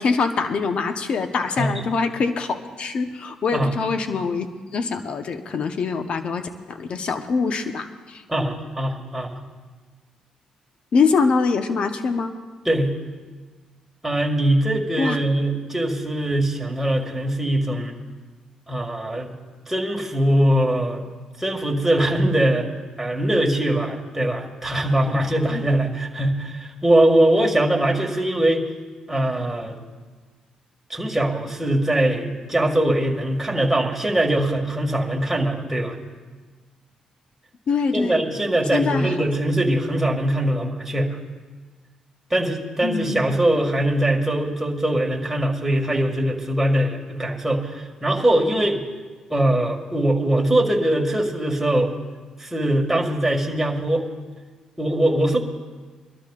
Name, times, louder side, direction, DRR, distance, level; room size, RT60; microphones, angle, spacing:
voice 1, 0.0-4.5 4.7-8.2 10.9-12.3 15.0-15.2 25.5-25.6 37.7-38.2 38.7-39.2 42.8-43.2, left 4 dB, 60° left, 7 dB, 1.0 m, -24 dB
voice 2, 8.3-9.4 12.7-12.9 14.0-18.0 18.7-19.3 19.7-21.0 21.4-22.7 23.0-28.6 29.1-29.8 30.9-36.0 37.9-41.2 42.3-48.8 49.3-51.9 52.4-54.0 54.8-55.4, right 1 dB, 5° right, -1 dB, 2.0 m, -21 dB
23.0 x 12.5 x 2.5 m, 1.4 s
cardioid pair, 75°, 2 cm